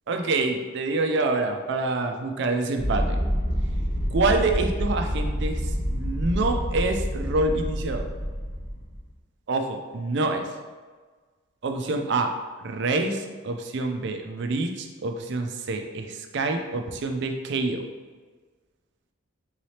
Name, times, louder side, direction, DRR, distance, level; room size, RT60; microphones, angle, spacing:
voice 1, 0.1-3.2 4.1-8.1 9.5-10.5 11.6-12.3 12.6-17.8, right 3 dB, 55° right, 5 dB, 0.4 m, -26 dB
sound 1, 2.8-9.0, equal, 35° left, 1.1 m, -27 dB
3.8 x 3.1 x 2.8 m, 1.4 s
head